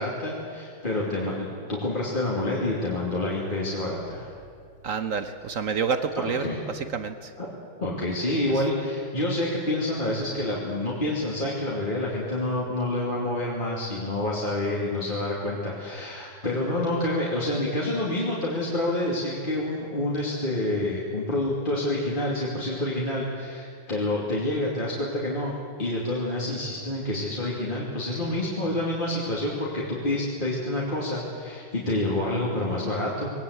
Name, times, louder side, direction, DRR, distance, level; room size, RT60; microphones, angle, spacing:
voice 1, 0.0-4.3 6.2-6.6 7.4-7.5 7.8-25.5 25.8-33.3, left 1 dB, 25° left, -5 dB, 3.0 m, -28 dB
voice 2, 4.8-6.5 6.7-7.3, right 6 dB, 50° right, 9 dB, 1.1 m, -28 dB
21.5 x 18.0 x 8.3 m, 2.2 s
omnidirectional pair, 2.0 m